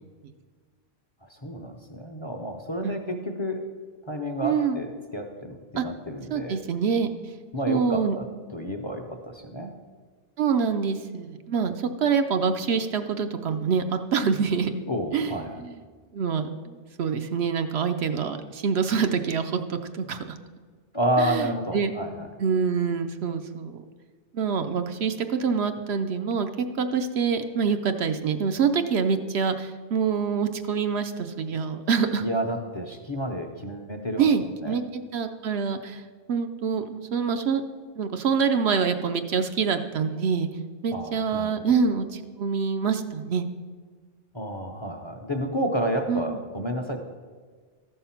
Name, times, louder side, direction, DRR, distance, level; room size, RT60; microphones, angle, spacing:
voice 1, 1.2-3.6 4.1-6.6 7.5-8.3 8.5-9.7 14.9-15.6 20.9-22.3 32.2-34.3 34.6-34.8 40.9-41.8 44.3-47.0, equal, 30° left, 4 dB, 0.7 m, -30 dB
voice 2, 2.8-3.2 4.4-4.8 5.8-5.9 6.3-7.1 7.7-8.2 10.4-14.7 15.1-15.8 16.1-20.4 21.2-21.9 22.4-23.8 24.3-32.3 34.2-36.0 36.3-37.6 38.0-40.5 40.8-43.5 46.1-46.4, right 6 dB, 65° right, 7 dB, 0.8 m, -26 dB
13.5 x 5.6 x 5.8 m, 1.5 s
omnidirectional pair, 1.2 m